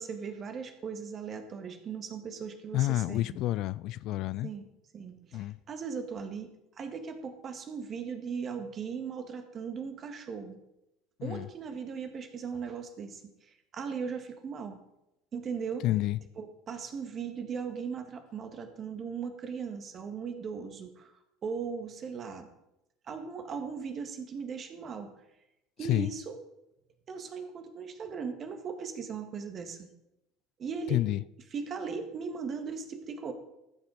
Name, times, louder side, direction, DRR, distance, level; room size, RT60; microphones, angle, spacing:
voice 1, 0.0-3.4 4.4-4.6 4.9-6.5 6.8-10.6 11.2-14.8 15.3-15.8 16.4-21.1 21.4-22.5 23.0-25.1 25.8-26.4 27.1-29.9 30.6-31.0 31.5-33.3, right 6 dB, 40° right, 1.8 m, -38 dB
voice 2, 2.7-4.5 5.3-5.6 11.2-11.5 15.8-16.2 25.8-26.1 30.9-31.2, left 16 dB, 55° left, 0.3 m, -29 dB
14.5 x 6.4 x 5.0 m
hypercardioid pair, 70°, 0 cm